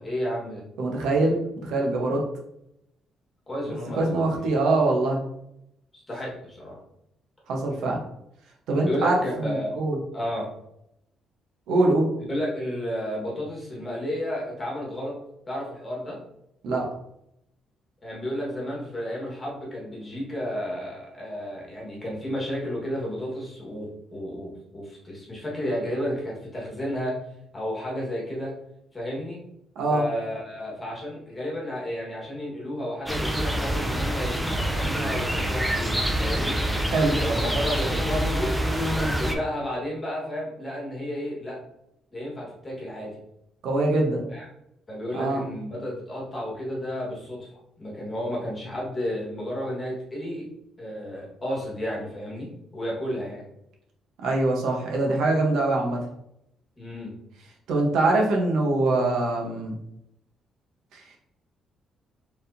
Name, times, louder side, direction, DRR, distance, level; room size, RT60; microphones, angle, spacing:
voice 1, 0.0-0.6 3.5-4.3 5.9-6.8 8.8-9.8 10.1-10.5 12.3-15.1 15.5-16.2 18.0-27.2 27.5-28.5 28.9-29.4 29.9-36.6 37.2-38.5 38.9-41.6 42.1-43.2 44.3-44.4 44.9-50.5 50.8-53.5 56.8-57.2, equal, 15° left, -4 dB, 1.4 m, -32 dB
voice 2, 0.8-2.2 4.0-5.2 7.5-8.0 8.7-10.0 11.7-12.1 16.6-16.8 29.8-30.0 36.9-37.2 43.6-44.2 45.1-45.4 54.2-56.0 57.7-59.8 60.9-61.0, right 2 dB, 80° right, 0 dB, 0.9 m, -23 dB
sound 1, 33.1-39.3, right 1 dB, 5° right, 0.4 m, -26 dB
4.5 x 3.5 x 2.6 m, 0.79 s
cardioid pair, 175°, 0 cm